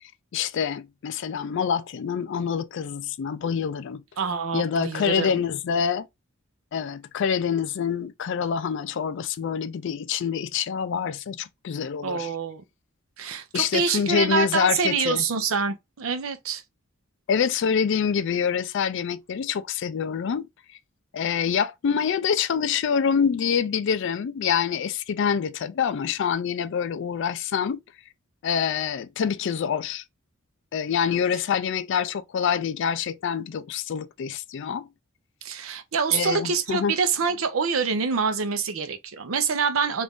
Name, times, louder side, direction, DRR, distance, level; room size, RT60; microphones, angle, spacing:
voice 1, 0.3-4.0 4.5-6.1 6.7-12.3 13.5-15.2 17.3-20.5 21.1-27.8 28.4-30.0 30.7-34.9 36.1-36.9, left 7 dB, 60° left, 0.3 m, -26 dB
voice 2, 4.2-5.4 12.0-12.6 13.2-16.6 35.4-40.0, right 5 dB, 80° right, 0.6 m, -26 dB
3.1 x 2.5 x 3.5 m
head